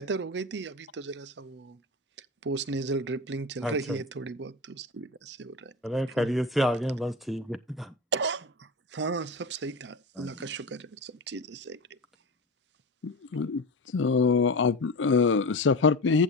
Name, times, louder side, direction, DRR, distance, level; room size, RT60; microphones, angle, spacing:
voice 1, 0.0-1.8 2.4-5.7 6.2-6.4 8.1-11.8, right 3 dB, 65° right, 0.6 m, -35 dB
voice 2, 5.8-7.9 10.2-10.3, equal, ahead, 0.5 m, -29 dB
voice 3, 13.0-13.6 13.9-16.2, left 5 dB, 85° left, 0.5 m, -24 dB
14.5 x 7.3 x 2.5 m
head